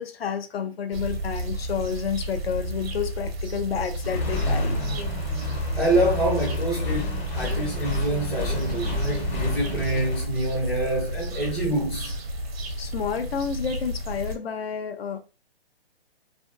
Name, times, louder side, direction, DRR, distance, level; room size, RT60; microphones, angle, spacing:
voice 1, 0.0-4.8 12.8-15.2, left 7 dB, 70° left, 0.6 m, -30 dB
sound 1, 0.9-14.4, right 1 dB, 70° right, 0.8 m, -32 dB
Accelerating revving vroom, 4.0-10.2, left 1 dB, 45° left, 1.0 m, -29 dB
voice 2, 5.7-12.2, right 1 dB, ahead, 0.5 m, -26 dB
2.5 x 2.3 x 2.4 m
hypercardioid pair, 150°, 31 cm